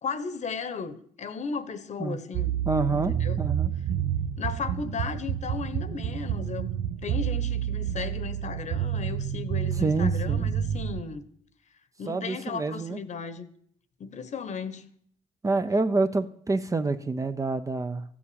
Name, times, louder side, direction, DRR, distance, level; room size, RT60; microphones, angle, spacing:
voice 1, 0.0-2.5 2.9-3.4 4.4-6.7 7.0-11.3 12.0-13.5 14.0-14.8, left 5 dB, 50° left, 1.2 m, -35 dB
sound 1, 2.3-11.0, right 9 dB, 85° right, 0.7 m, -29 dB
voice 2, 2.7-3.7 9.7-10.4 12.1-13.0 15.4-18.0, right 3 dB, 20° right, 0.7 m, -27 dB
14.5 x 7.2 x 8.7 m
cardioid pair, 135°, 15 cm